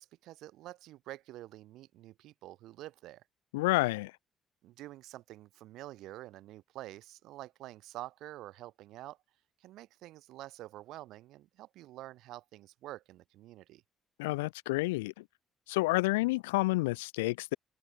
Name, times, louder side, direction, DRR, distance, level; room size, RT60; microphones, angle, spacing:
voice 1, 0.0-3.2 4.6-9.2 9.6-13.8, right 15 dB, 75° right, 2.8 m, -48 dB
voice 2, 3.5-4.1 14.2-15.1 15.7-17.6, left 22 dB, 85° left, 1.2 m, -29 dB
hypercardioid pair, 50°, 0 cm